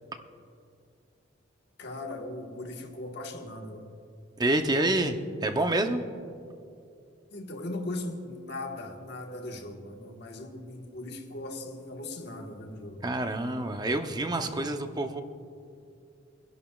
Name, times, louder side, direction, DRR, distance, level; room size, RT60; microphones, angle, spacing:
voice 1, 1.8-3.9 7.3-13.1 13.4-13.7 14.4-14.6, left 2 dB, 60° left, 2 dB, 1.3 m, -39 dB
voice 2, 4.4-6.0 13.0-15.2, right 2 dB, 20° right, 6 dB, 0.6 m, -27 dB
24.5 x 11.0 x 2.3 m, 2.5 s
head